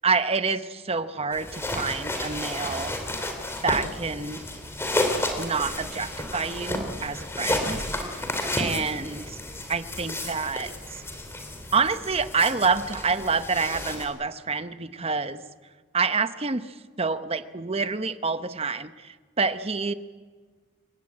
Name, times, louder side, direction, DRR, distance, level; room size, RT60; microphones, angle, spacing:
voice 1, 0.0-3.0 3.6-4.4 5.4-8.3 8.6-9.2 9.7-11.0 11.7-15.4 15.9-19.9, right 4 dB, 30° right, 12 dB, 0.9 m, -27 dB
sound 1, 1.3-14.1, left 1 dB, 10° left, 2.9 m, -32 dB
28.0 x 16.0 x 8.8 m, 1.4 s
head